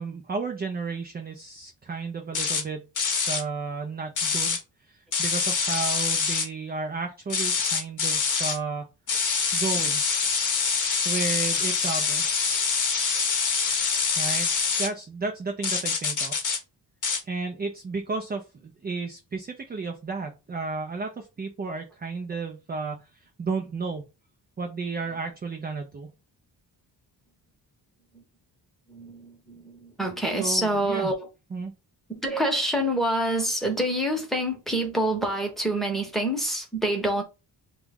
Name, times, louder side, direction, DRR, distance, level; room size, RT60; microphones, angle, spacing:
voice 1, 0.0-2.9 3.2-8.9 9.5-10.0 11.0-12.3 14.2-14.5 14.8-16.4 17.2-24.0 24.6-26.1 30.4-31.1 31.5-31.7, right 4 dB, 25° right, 0.4 m, -33 dB
sound 1, 2.3-2.6 3.0-3.4 4.2-4.6 5.1-6.5 7.3-8.6 9.1-14.9 15.6-16.6 17.0-17.2, left 5 dB, 45° left, 0.8 m, -25 dB
voice 2, 28.9-31.1 32.1-37.2, right 1 dB, ahead, 0.9 m, -26 dB
3.0 x 2.3 x 3.4 m
wide cardioid pair, 130°, 42 cm